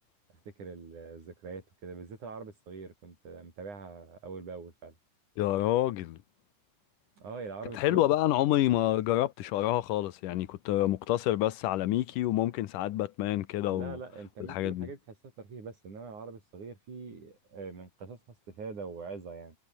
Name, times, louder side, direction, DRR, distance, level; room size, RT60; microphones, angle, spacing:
voice 1, 0.3-4.9 7.2-8.0 13.7-15.0 15.4-19.6, right 4 dB, 65° right, 7.3 m, -43 dB
voice 2, 5.4-6.2 7.7-14.0 14.5-14.9, left 14 dB, 80° left, 2.6 m, -28 dB
omnidirectional pair, 3.7 m